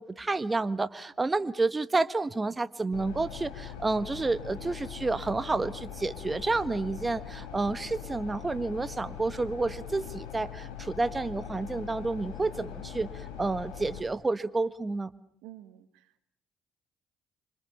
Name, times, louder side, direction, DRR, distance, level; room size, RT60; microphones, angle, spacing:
voice 1, 0.0-15.1, right 3 dB, 25° right, 13 dB, 1.6 m, -30 dB
sound 1, 2.9-14.0, left 9 dB, 75° left, 5.3 m, -42 dB
voice 2, 15.4-16.3, right 15 dB, 75° right, 12 dB, 1.5 m, -50 dB
28.0 x 26.0 x 7.1 m, 0.64 s
hypercardioid pair, 50°, 0 cm